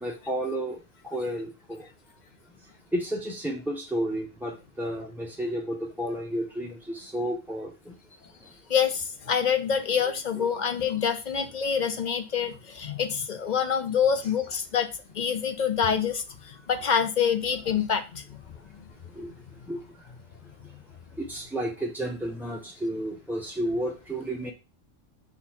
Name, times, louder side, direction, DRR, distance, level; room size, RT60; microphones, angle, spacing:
voice 1, 0.0-0.8 1.1-1.9 2.9-8.0 10.4-10.5 19.2-19.3 19.7-19.8 21.2-24.5, right 1 dB, ahead, 0.5 m, -32 dB
voice 2, 8.7-18.4, left 7 dB, 55° left, 0.5 m, -26 dB
5.7 x 3.9 x 4.4 m
omnidirectional pair, 1.3 m